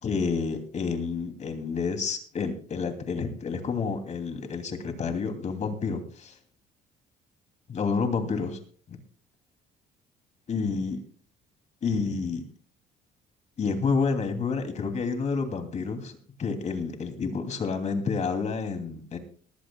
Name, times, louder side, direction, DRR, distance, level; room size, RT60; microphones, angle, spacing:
voice 1, 0.0-6.4 7.7-8.6 8.9-9.0 10.5-11.0 11.8-12.4 13.6-19.2, left 5 dB, 45° left, 6 dB, 2.7 m, -29 dB
19.5 x 15.0 x 2.3 m, 0.42 s
cardioid pair, 110°, 17 cm